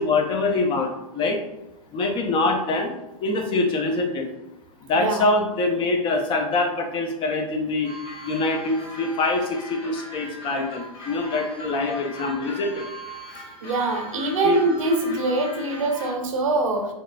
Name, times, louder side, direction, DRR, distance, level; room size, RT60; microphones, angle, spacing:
voice 1, 0.0-1.4 1.9-2.9 3.2-4.3 4.9-7.9 8.2-9.6 9.8-12.9 14.4-14.6, left 3 dB, 25° left, 3 dB, 0.6 m, -24 dB
sound 1, 7.8-16.2, left 1 dB, 45° left, 1.3 m, -39 dB
voice 2, 13.6-16.9, right 2 dB, 60° right, 4 dB, 0.7 m, -24 dB
3.9 x 3.6 x 2.3 m, 0.91 s
figure-of-eight pair, 100°, 19 cm